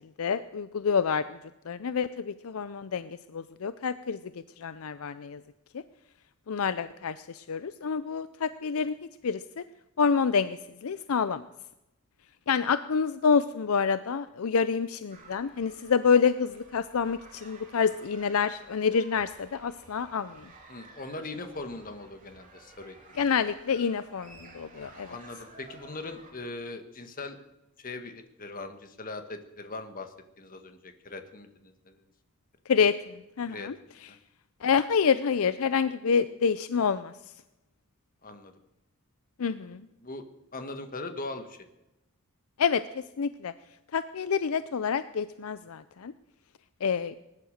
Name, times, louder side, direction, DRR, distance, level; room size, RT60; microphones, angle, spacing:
voice 1, 0.2-1.4 1.7-4.2 4.6-5.4 5.7-5.8 6.5-9.0 9.2-9.6 10.0-11.4 12.5-20.4 23.2-25.1 32.7-33.7 34.6-37.1 39.4-39.9 42.6-42.8 43.2-43.5 43.9-46.1 46.8-47.1, left 6 dB, 70° left, 14 dB, 0.5 m, -27 dB
sound 1, 15.1-26.3, right 3 dB, 35° right, 3.1 m, -53 dB
voice 2, 20.7-23.0 25.0-27.4 27.8-32.0 33.5-33.7 34.1-34.2 38.2-38.5 39.5-39.6 40.0-40.2 40.5-41.6, left 2 dB, 40° left, 7 dB, 1.5 m, -40 dB
20.0 x 10.5 x 6.6 m, 0.92 s
head